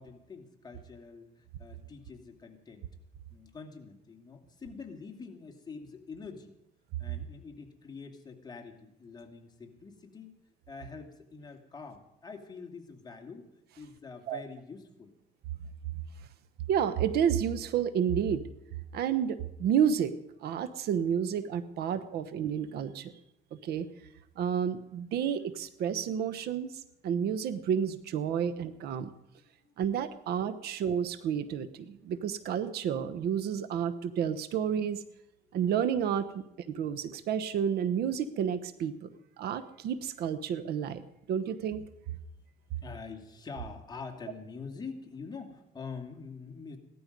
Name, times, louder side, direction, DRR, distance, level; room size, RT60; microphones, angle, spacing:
voice 1, 0.0-2.9 3.3-6.5 7.0-10.3 10.7-13.5 13.8-15.1 29.4-30.0 30.5-30.7 42.8-46.8, left 5 dB, 25° left, 3 dB, 2.3 m, -45 dB
voice 2, 16.7-18.4 18.9-20.1 20.4-23.1 23.5-23.9 24.4-29.1 29.8-35.0 35.5-39.1 39.4-41.8, right 8 dB, 70° right, 13 dB, 1.0 m, -30 dB
17.0 x 12.5 x 5.3 m, 0.83 s
cardioid pair, 110°, 17 cm